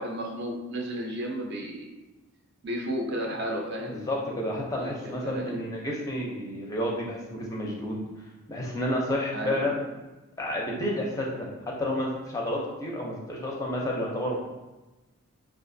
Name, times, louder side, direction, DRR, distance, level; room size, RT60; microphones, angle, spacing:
voice 1, 0.0-1.9 2.6-4.0 4.7-5.5 9.3-9.8, equal, 50° right, 0 dB, 0.5 m, -33 dB
voice 2, 3.9-8.0 8.5-9.8 10.4-14.4, left 1 dB, 15° left, -2 dB, 0.5 m, -30 dB
4.8 x 2.4 x 2.6 m, 1.1 s
head